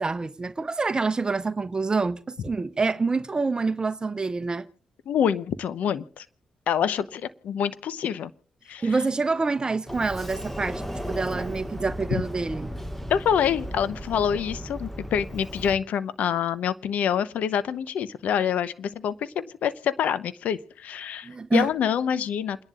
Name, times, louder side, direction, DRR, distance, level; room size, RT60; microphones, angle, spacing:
voice 1, 0.0-4.7 8.8-12.8 21.2-21.7, right 4 dB, 30° right, 0.8 m, -27 dB
voice 2, 5.1-6.2 6.7-8.3 8.7-8.9 12.1-12.2 13.1-22.6, left 8 dB, 75° left, 0.8 m, -26 dB
Sliding door, 9.9-15.8, equal, 10° left, 1.6 m, -35 dB
29.0 x 10.5 x 2.5 m
supercardioid pair, 45°, 3 cm